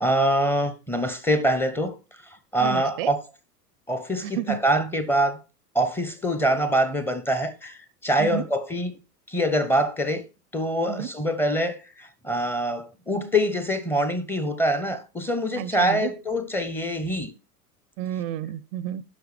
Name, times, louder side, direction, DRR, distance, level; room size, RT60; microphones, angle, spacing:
voice 1, 0.0-2.0 2.2-3.2 3.9-5.4 5.7-9.0 9.3-10.2 10.5-17.3, equal, 5° left, 0.6 m, -24 dB
voice 2, 2.6-3.1 4.2-4.6 8.2-8.4 10.9-11.1 15.6-16.1 18.0-19.0, right 10 dB, 35° right, 0.4 m, -31 dB
9.4 x 6.3 x 3.2 m
figure-of-eight pair, 85°, 47 cm